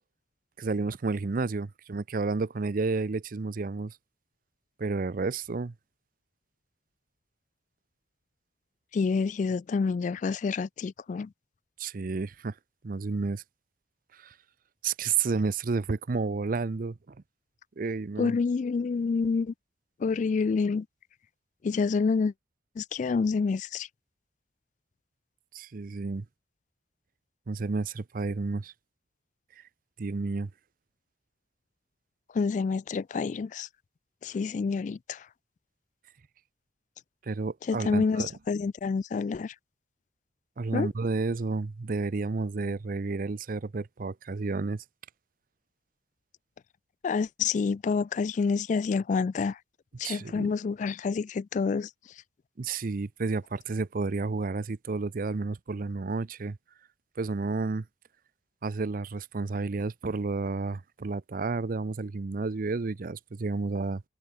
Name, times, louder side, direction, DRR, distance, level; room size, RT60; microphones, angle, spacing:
voice 1, 0.6-4.0 4.8-5.7 11.8-12.5 12.8-13.4 14.1-14.3 14.8-17.2 17.8-18.4 25.5-26.3 27.5-28.7 30.0-30.5 37.2-38.4 40.6-44.8 50.0-50.5 52.6-56.6 57.2-57.8 58.6-64.0, right 4 dB, 50° right, 0.5 m, -31 dB
voice 2, 8.9-11.3 18.2-19.5 20.0-20.9 21.6-22.3 22.8-23.9 32.3-33.7 34.2-35.2 37.7-39.5 40.7-40.9 47.0-49.6 50.0-51.9, left 5 dB, 45° left, 0.3 m, -28 dB
head